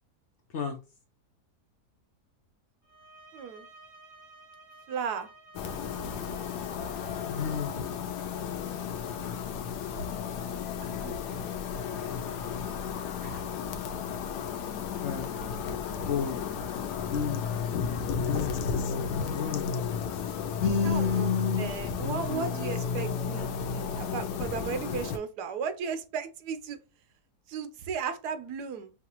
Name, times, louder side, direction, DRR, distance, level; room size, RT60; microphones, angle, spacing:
sound 1, 2.8-8.2, right 3 dB, 35° right, 1.4 m, -54 dB
voice 1, 3.3-3.7 4.9-5.3 11.0-11.5 13.2-13.4 20.8-21.3 21.6-26.8 27.5-28.9, right 6 dB, 80° right, 1.2 m, -35 dB
sound 2, 5.5-25.2, left 6 dB, 90° left, 1.2 m, -33 dB
voice 2, 7.2-7.8 15.0-15.4 16.1-16.4 17.1-17.5 18.3-18.7 19.3-19.8 20.6-21.7 22.0-22.5, left 6 dB, 60° left, 0.8 m, -30 dB
5.7 x 2.4 x 2.9 m
omnidirectional pair, 1.7 m